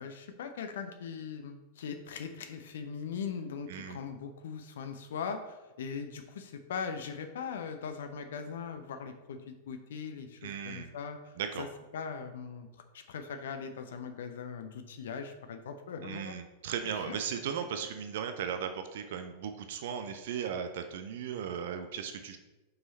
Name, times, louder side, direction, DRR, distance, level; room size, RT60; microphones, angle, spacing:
voice 1, 0.0-11.7 11.9-16.4 17.1-17.2, left 6 dB, 60° left, 7 dB, 0.6 m, -40 dB
voice 2, 3.7-4.0 10.4-10.9 11.4-11.7 16.0-22.4, right 8 dB, 55° right, 7 dB, 0.5 m, -37 dB
5.6 x 5.5 x 4.0 m, 1.1 s
figure-of-eight pair, 90°, 0 cm